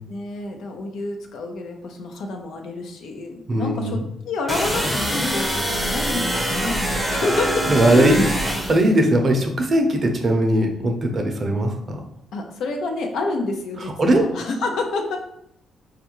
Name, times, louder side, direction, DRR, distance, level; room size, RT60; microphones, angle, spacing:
voice 1, 0.1-8.1 12.3-15.2, left 3 dB, 75° left, 3 dB, 0.6 m, -28 dB
voice 2, 3.5-4.0 6.3-6.7 7.3-8.2 8.5-12.0 13.8-14.3, right 1 dB, 40° right, 4 dB, 0.6 m, -20 dB
sound 1, 4.5-8.9, equal, ahead, 0.7 m, -24 dB
4.4 x 2.4 x 2.9 m, 0.75 s
cardioid pair, 90°, 0 cm